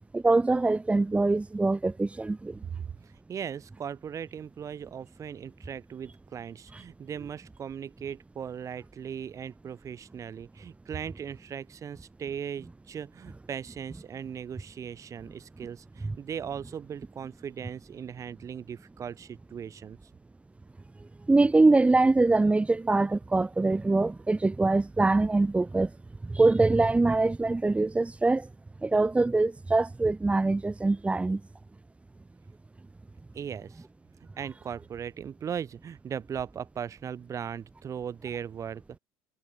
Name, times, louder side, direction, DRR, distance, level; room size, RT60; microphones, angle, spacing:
voice 1, 0.1-2.5 21.3-25.9 26.3-28.5 28.8-31.4, right 3 dB, 15° right, 5.3 m, -23 dB
voice 2, 3.0-20.0 33.3-33.9 34.4-39.0, right 8 dB, 40° right, 7.2 m, -38 dB
hypercardioid pair, 75°, 8 cm